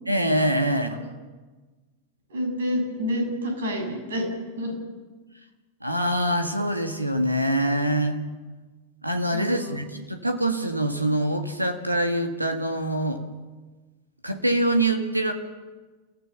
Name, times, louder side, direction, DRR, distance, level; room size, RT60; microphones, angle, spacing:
voice 1, 0.1-1.0 5.8-8.2 9.0-13.2 14.2-15.3, right 1 dB, 85° right, 6 dB, 1.8 m, -24 dB
voice 2, 2.3-4.3 4.6-4.7 9.3-9.7, equal, 65° right, 3 dB, 7.3 m, -28 dB
30.0 x 15.5 x 6.8 m, 1.3 s
figure-of-eight pair, 90°, 0 cm